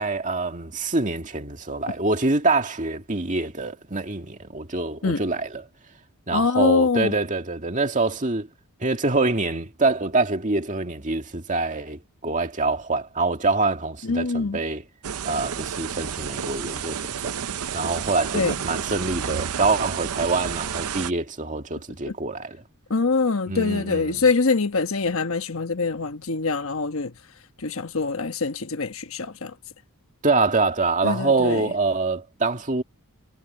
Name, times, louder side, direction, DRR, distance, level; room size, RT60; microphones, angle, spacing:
voice 1, 0.0-5.7 6.3-8.5 8.8-14.8 15.3-17.3 17.7-22.6 23.5-24.3 30.2-32.8, right 3 dB, 35° right, 2.2 m, -25 dB
voice 2, 6.3-7.1 14.0-14.6 18.3-18.5 22.1-22.2 22.9-27.1 27.6-29.5 31.0-31.7, left 4 dB, 65° left, 1.2 m, -24 dB
sound 1, 15.0-21.1, right 7 dB, 85° right, 0.7 m, -30 dB
head